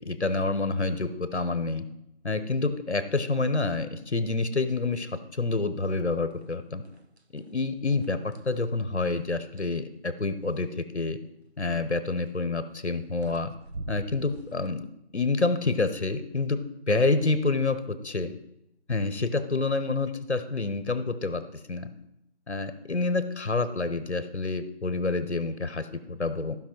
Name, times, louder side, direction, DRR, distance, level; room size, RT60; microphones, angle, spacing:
voice 1, 0.0-1.8 2.2-6.8 7.3-10.7 10.9-11.2 11.6-13.5 13.9-14.8 15.1-16.6 16.9-18.3 18.9-21.4 21.7-21.9 22.5-26.6, left 3 dB, 75° left, 11 dB, 1.1 m, -28 dB
sound 1, 6.3-6.5 6.8-7.5 7.9-9.8 12.0-12.3 12.9-13.0 13.2-14.7, right 2 dB, 70° right, 1.1 m, -43 dB
14.5 x 5.6 x 4.6 m, 0.84 s
figure-of-eight pair, 175°, 34 cm